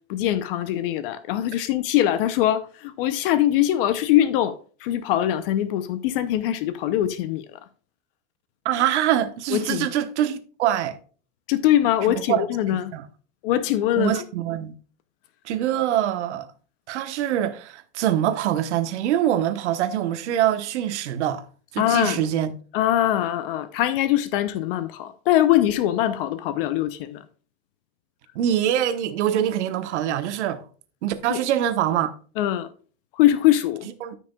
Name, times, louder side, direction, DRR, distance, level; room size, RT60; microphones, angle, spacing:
voice 1, 0.1-7.6 9.5-9.9 11.5-12.9 13.4-14.2 21.8-22.2 22.7-27.2 31.3-31.4 32.4-32.7 33.2-33.9, left 12 dB, 50° left, 0.7 m, -22 dB
voice 2, 8.6-11.0 12.1-13.0 14.0-14.7 15.4-16.5 16.9-21.4 21.7-22.5 28.3-30.6 31.0-32.1 34.0-34.2, right 11 dB, 80° right, 1.1 m, -24 dB
13.5 x 6.0 x 2.3 m
supercardioid pair, 160°, 34 cm